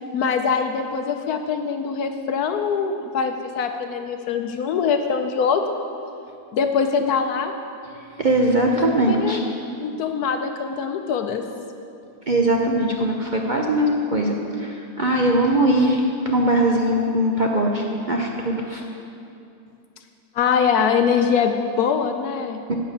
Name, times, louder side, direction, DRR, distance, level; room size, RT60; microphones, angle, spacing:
voice 1, 0.1-5.6 6.5-7.5 8.8-9.4 9.8-11.4 14.4-14.5 20.3-22.6, left 6 dB, 70° left, 6 dB, 1.1 m, -23 dB
voice 2, 8.2-9.4 12.3-18.8 22.7-22.8, right 1 dB, 50° right, 0 dB, 0.5 m, -21 dB
10.5 x 5.9 x 8.3 m, 2.6 s
omnidirectional pair, 1.8 m